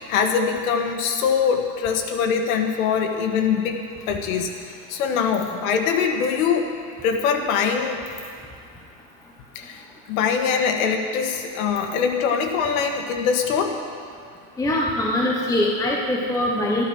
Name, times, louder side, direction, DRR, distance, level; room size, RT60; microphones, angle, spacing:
voice 1, 0.0-6.7 7.0-8.0 9.6-9.8 10.1-13.8, left 6 dB, 85° left, 4 dB, 1.7 m, -23 dB
voice 2, 14.6-16.9, left 1 dB, 10° left, -2 dB, 1.0 m, -22 dB
13.0 x 11.5 x 6.2 m, 2.3 s
supercardioid pair, 150°, 40 cm